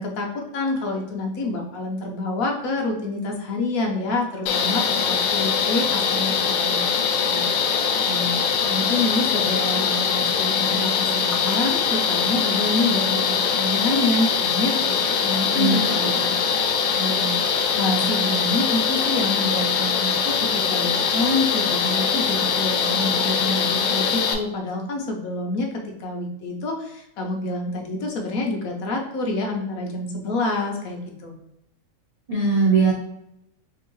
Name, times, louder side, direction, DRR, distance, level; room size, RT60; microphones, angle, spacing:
voice 1, 0.0-6.9 7.3-8.3 8.7-14.9 15.2-16.7 17.0-17.3 17.7-25.7 26.0-31.3, left 2 dB, 60° left, 1 dB, 1.0 m, -27 dB
sound 1, 4.5-24.3, left 6 dB, 80° left, 1.3 m, -22 dB
voice 2, 15.5-15.9 16.2-16.3 32.3-32.9, right 4 dB, 90° right, -4 dB, 0.3 m, -20 dB
4.3 x 2.9 x 3.1 m, 0.82 s
omnidirectional pair, 1.9 m